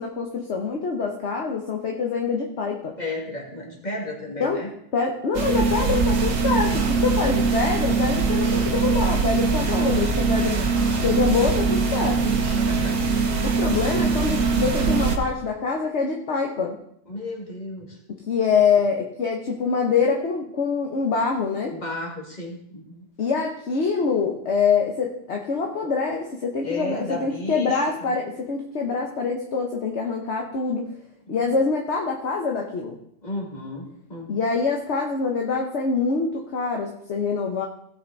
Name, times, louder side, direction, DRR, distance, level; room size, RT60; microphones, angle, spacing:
voice 1, 0.0-2.9 4.4-4.6 4.9-10.6 11.0-12.3 13.4-16.8 18.3-21.7 23.2-30.8 31.3-33.0 34.3-37.7, left 5 dB, 55° left, 0 dB, 1.3 m, -25 dB
voice 2, 3.0-4.7 10.4-10.7 12.6-13.0 17.1-18.0 21.7-23.1 26.6-28.1 31.3-31.5 33.2-34.4, left 1 dB, 30° left, -1 dB, 2.5 m, -34 dB
sound 1, 5.3-15.2, right 4 dB, 70° right, 1.6 m, -22 dB
16.5 x 5.8 x 4.0 m, 0.72 s
omnidirectional pair, 1.4 m